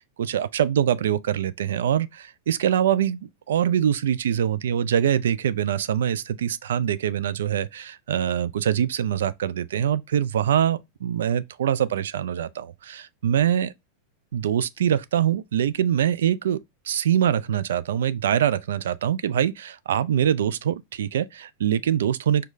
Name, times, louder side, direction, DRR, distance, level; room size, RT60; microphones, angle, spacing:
voice 1, 0.0-13.7 14.3-16.6 16.8-22.4, right 9 dB, 60° right, 0.3 m, -24 dB
4.9 x 2.3 x 3.7 m
figure-of-eight pair, 90°, 0 cm